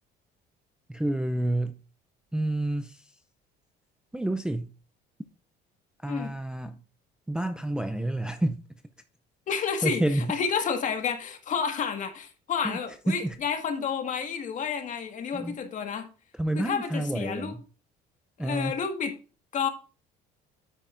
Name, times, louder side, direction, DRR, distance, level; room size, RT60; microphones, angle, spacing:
voice 1, 0.9-1.8 2.3-3.2 4.1-4.7 6.0-6.8 7.3-8.6 9.8-10.3 12.6-12.8 13.1-13.4 15.3-15.6 16.3-17.6 18.4-18.7, right 1 dB, 5° right, 0.4 m, -29 dB
voice 2, 9.5-10.0 10.3-16.1 16.6-17.6 18.4-19.1 19.5-19.7, left 6 dB, 45° left, 1.7 m, -30 dB
9.0 x 8.9 x 2.5 m
cardioid pair, 125°, 18 cm